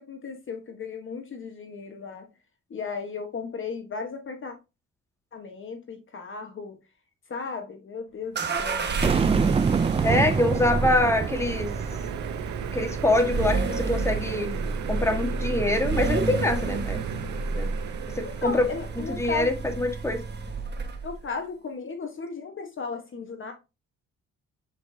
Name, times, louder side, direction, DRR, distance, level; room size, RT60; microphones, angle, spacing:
voice 1, 0.0-2.3 2.7-4.5 5.3-6.8 7.3-8.9 18.2-19.5 21.0-23.5, left 5 dB, 40° left, 1.2 m, -35 dB
sound 1, 8.3-19.7, right 10 dB, 90° right, 0.8 m, -38 dB
sound 2, 8.4-21.2, right 3 dB, 35° right, 1.4 m, -30 dB
Boom, 9.0-12.3, right 5 dB, 20° right, 0.4 m, -26 dB
voice 2, 10.0-11.7 12.7-14.5 14.9-17.0 17.5-17.7 18.1-18.7 19.1-20.2, left 1 dB, 10° left, 1.5 m, -24 dB
8.0 x 5.0 x 2.7 m
cardioid pair, 90°, 30 cm